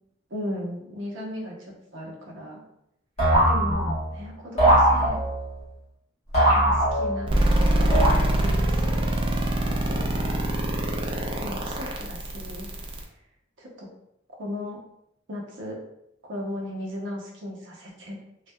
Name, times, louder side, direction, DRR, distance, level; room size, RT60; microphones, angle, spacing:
voice 1, 0.3-2.6 3.4-5.2 6.5-8.1 8.4-9.2 9.6-10.4 11.4-12.7 13.6-13.9 14.4-14.8 15.3-15.8 16.2-18.2, left 1 dB, 70° right, -2 dB, 0.7 m, -36 dB
sound 1, 3.2-4.1 4.6-5.5 6.3-7.4 7.9-8.6, right 1 dB, 35° left, 1.2 m, -21 dB
sound 2, 7.3-13.0, right 1 dB, 25° right, 0.3 m, -24 dB
2.6 x 2.3 x 2.2 m, 0.78 s
head